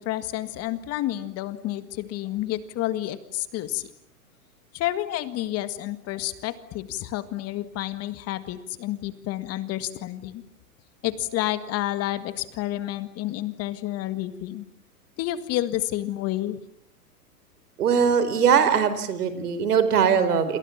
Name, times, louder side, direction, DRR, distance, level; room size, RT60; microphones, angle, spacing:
voice 1, 0.0-3.9 4.7-10.4 11.0-14.6 15.2-16.6, left 14 dB, 30° left, 13 dB, 1.8 m, -30 dB
voice 2, 17.8-20.6, right 7 dB, 75° right, 12 dB, 4.7 m, -21 dB
28.5 x 28.0 x 7.4 m, 0.69 s
hypercardioid pair, 120°, 46 cm